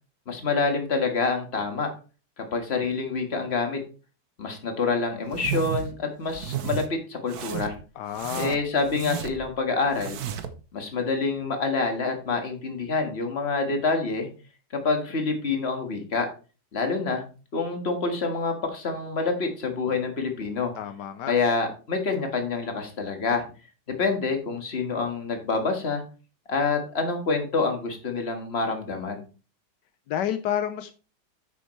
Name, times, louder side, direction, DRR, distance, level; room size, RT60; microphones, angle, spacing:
voice 1, 0.3-1.9 2.4-3.8 4.4-7.8 8.3-10.2 10.7-14.3 14.8-16.3 16.7-17.2 17.5-20.7 21.3-23.4 23.9-26.0 26.5-29.2, left 4 dB, 35° left, 1.9 m, -27 dB
sound 1, 5.3-5.9 6.3-6.9 7.3-7.8 8.1-9.5 9.9-10.6, right 9 dB, 65° right, 1.3 m, -33 dB
voice 2, 8.0-8.6 20.8-21.3 30.1-30.9, left 10 dB, 80° left, 1.3 m, -29 dB
9.6 x 6.8 x 3.2 m
omnidirectional pair, 1.9 m